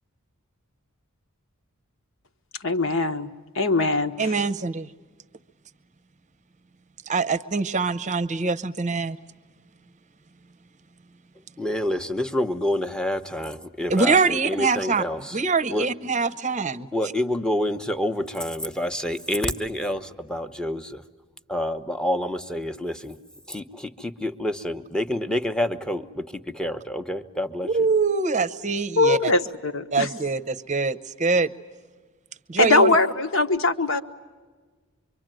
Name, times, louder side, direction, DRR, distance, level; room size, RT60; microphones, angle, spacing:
voice 1, 2.6-3.3 3.5-4.4 29.0-30.1 32.6-34.0, left 2 dB, 65° left, 7 dB, 1.2 m, -21 dB
voice 2, 4.2-4.9 7.1-9.2 13.9-15.0 15.3-16.9 27.6-29.3 29.9-31.5 32.5-32.9, right 4 dB, 35° right, 14 dB, 0.8 m, -24 dB
voice 3, 11.6-15.4 15.7-15.9 16.9-21.0 21.5-23.2 23.5-27.9, left 1 dB, 5° left, 8 dB, 0.9 m, -28 dB
24.5 x 24.5 x 9.1 m, 1.4 s
head